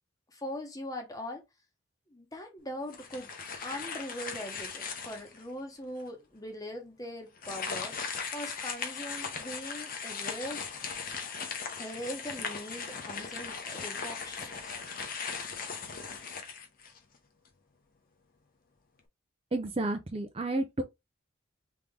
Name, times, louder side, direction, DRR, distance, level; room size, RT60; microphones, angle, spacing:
voice 1, 0.3-1.4 2.1-3.3 3.6-7.9 8.3-10.7 11.8-14.8, left 1 dB, 15° left, 1.1 m, -41 dB
sound 1, 2.9-5.4 6.0-6.1 7.4-17.2, left 5 dB, 45° left, 0.9 m, -38 dB
voice 2, 19.5-20.8, right 2 dB, 30° right, 0.5 m, -31 dB
3.7 x 3.7 x 3.3 m
head